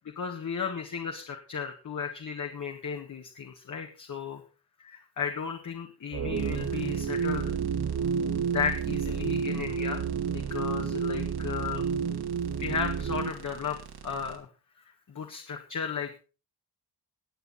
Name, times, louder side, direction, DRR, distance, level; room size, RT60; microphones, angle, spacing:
voice 1, 0.1-4.4 4.8-7.5 8.5-10.1 10.3-11.9 12.6-13.8 14.0-14.5 14.8-16.2, left 6 dB, 50° left, 2 dB, 1.7 m, -34 dB
sound 1, 6.1-13.3, right 6 dB, 40° right, 0.7 m, -30 dB
sound 2, 6.4-14.4, right 7 dB, 70° right, 2.3 m, -47 dB
20.0 x 8.1 x 4.1 m, 0.35 s
wide cardioid pair, 150°, 39 cm